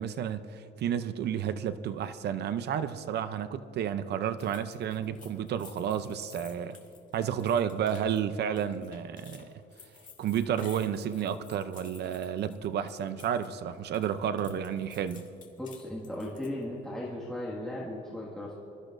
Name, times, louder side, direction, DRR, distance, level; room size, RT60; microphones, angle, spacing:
voice 1, 0.0-6.8 7.1-9.5 10.2-15.2, right 9 dB, 60° right, 0.6 m, -31 dB
sound 1, 4.4-13.5 13.8-16.6, left 6 dB, 45° left, 2.0 m, -54 dB
voice 2, 15.6-18.5, left 1 dB, 5° left, 1.8 m, -37 dB
25.5 x 14.0 x 2.6 m
cardioid pair, 150°, 19 cm